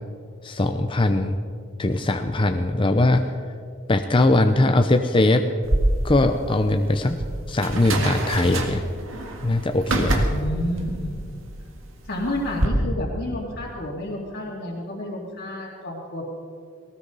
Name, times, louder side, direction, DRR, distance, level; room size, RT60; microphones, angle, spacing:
voice 1, 0.4-1.4 1.8-3.3 3.9-5.4 6.0-7.2 7.5-8.8 9.4-10.3, left 2 dB, 25° left, 6 dB, 0.6 m, -20 dB
sound 1, 5.6-12.7, right 1 dB, 75° right, 1.9 m, -27 dB
voice 2, 10.3-11.2 12.1-16.3, left 1 dB, 55° left, -6 dB, 2.6 m, -30 dB
19.0 x 18.5 x 4.0 m, 2.2 s
head